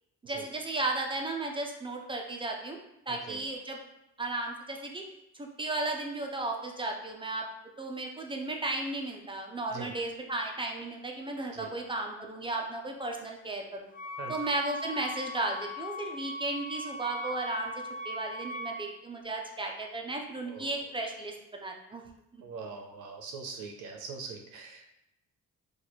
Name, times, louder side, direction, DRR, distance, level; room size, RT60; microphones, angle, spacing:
voice 1, 0.2-2.8 3.1-3.8 4.2-5.0 5.3-7.5 7.8-13.9 14.3-17.7 18.0-22.0 22.3-22.4, right 2 dB, 15° right, 1 dB, 0.5 m, -35 dB
voice 2, 3.1-3.5 9.7-9.9 11.5-11.7 14.2-14.4 20.5-20.7 22.4-24.9, right 5 dB, 85° right, 2 dB, 0.6 m, -42 dB
Wind instrument woodwind instrument, 13.9-18.9, right 1 dB, 30° left, 0.6 m, -39 dB
2.9 x 2.4 x 4.2 m, 0.85 s
cardioid pair, 90°, 30 cm